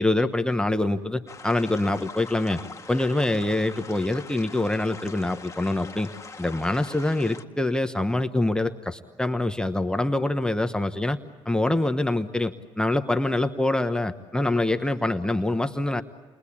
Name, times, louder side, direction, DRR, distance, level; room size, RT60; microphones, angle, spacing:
voice 1, 0.0-2.6 2.9-6.1 6.4-11.2 11.4-16.0, left 2 dB, 5° left, 7 dB, 1.1 m, -25 dB
sound 1, 1.3-7.4, left 4 dB, 30° left, 1.6 m, -42 dB
29.5 x 22.0 x 8.7 m, 1.3 s
supercardioid pair, 70°, 11 cm